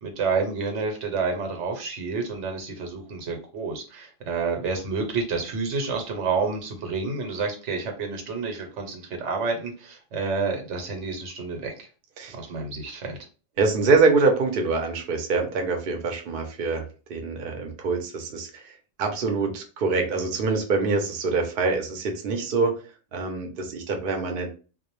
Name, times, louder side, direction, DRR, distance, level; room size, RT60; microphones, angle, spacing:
voice 1, 0.0-11.9 12.3-13.2, right 4 dB, 85° right, 3 dB, 1.0 m, -29 dB
voice 2, 13.6-22.8 23.1-24.5, right 4 dB, 60° right, 3 dB, 0.7 m, -25 dB
2.3 x 2.0 x 2.9 m, 0.35 s
omnidirectional pair, 1.2 m